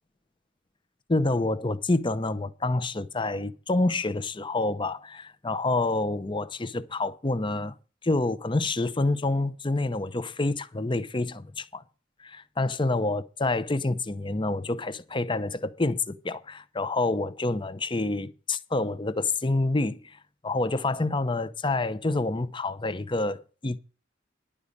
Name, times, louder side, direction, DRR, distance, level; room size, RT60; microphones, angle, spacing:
voice 1, 1.1-7.7 8.0-11.8 12.2-20.2 20.4-23.8, left 2 dB, 25° left, 0.8 m, -27 dB
11.0 x 5.2 x 8.4 m
head